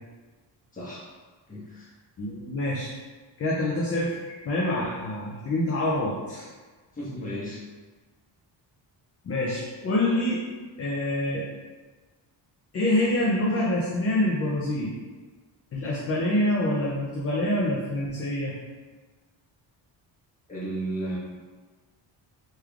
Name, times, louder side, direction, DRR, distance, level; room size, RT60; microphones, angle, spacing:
voice 1, 1.5-1.9 6.9-7.6 20.5-21.2, right 1 dB, 15° left, -9 dB, 1.1 m, -33 dB
voice 2, 2.2-3.0 3.4-6.5 9.2-10.4 10.8-11.5 12.7-14.9 15.7-18.6, left 1 dB, 35° left, -5 dB, 0.4 m, -26 dB
3.5 x 3.1 x 2.3 m, 1.4 s
wide cardioid pair, 175°, 47 cm